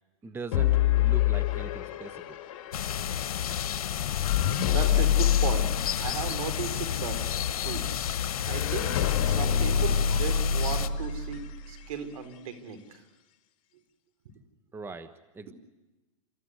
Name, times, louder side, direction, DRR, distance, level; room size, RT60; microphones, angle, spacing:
voice 1, 0.2-2.4 14.7-15.5, right 3 dB, 10° right, 10 dB, 1.1 m, -41 dB
sound 1, 0.5-11.8, left 9 dB, 60° left, 3.0 m, -28 dB
sound 2, 2.7-10.9, left 9 dB, 85° left, 1.3 m, -31 dB
voice 2, 4.6-7.3 7.6-7.9 8.4-13.0 15.5-15.6, right 7 dB, 70° right, 9 dB, 4.4 m, -36 dB
29.5 x 14.5 x 9.7 m, 1.1 s
hypercardioid pair, 130°, 18 cm